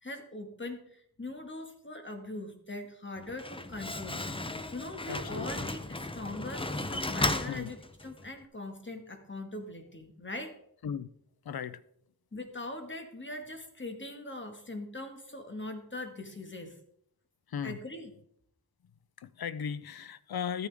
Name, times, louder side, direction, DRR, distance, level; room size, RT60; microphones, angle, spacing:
voice 1, 0.0-4.2 4.7-7.8 8.0-10.5 12.3-16.8 17.6-18.1, left 2 dB, 30° left, 1.8 m, -41 dB
Slam, 3.2-8.3, left 2 dB, 15° left, 0.6 m, -35 dB
voice 2, 5.1-5.5 7.5-7.7 10.8-11.1 11.4-11.8 17.5-17.8 19.2-20.7, left 7 dB, 75° left, 0.6 m, -36 dB
13.5 x 9.6 x 3.5 m
wide cardioid pair, 85°, 37 cm